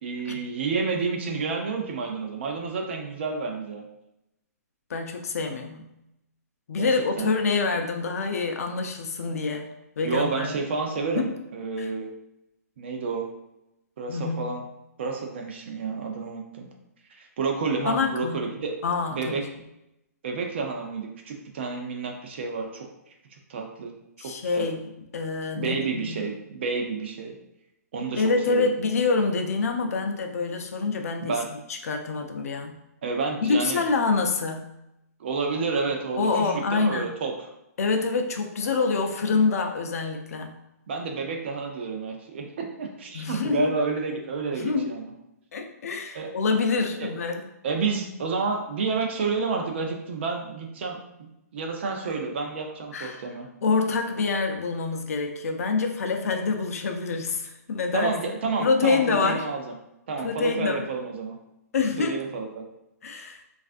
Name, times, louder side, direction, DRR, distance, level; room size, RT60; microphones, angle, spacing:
voice 1, 0.0-3.8 6.8-6.9 7.2-7.3 10.0-12.1 12.8-13.3 14.0-14.6 15.0-16.7 17.1-18.8 19.1-19.4 20.2-22.9 23.5-23.9 24.2-24.7 25.5-27.4 27.9-28.7 31.2-31.5 33.0-33.8 35.2-37.3 40.9-45.1 46.1-46.3 47.0-47.1 47.6-53.5 57.9-59.7 60.1-61.4 62.0-62.6, right 4 dB, 45° right, 2 dB, 0.5 m, -30 dB
voice 2, 4.9-5.9 6.7-9.7 10.0-10.5 11.1-11.3 11.8-11.9 14.1-14.5 17.9-18.5 18.8-19.4 24.2-24.8 25.1-26.3 28.2-32.8 33.4-34.7 36.2-37.2 37.8-40.6 43.1-43.7 44.5-45.0 45.5-47.4 52.9-53.2 53.6-58.1 58.6-59.4 60.2-60.9 61.7-62.2 63.0-63.4, left 4 dB, 60° left, 4 dB, 0.5 m, -26 dB
3.2 x 2.4 x 2.5 m, 0.86 s
hypercardioid pair, 165°, 9 cm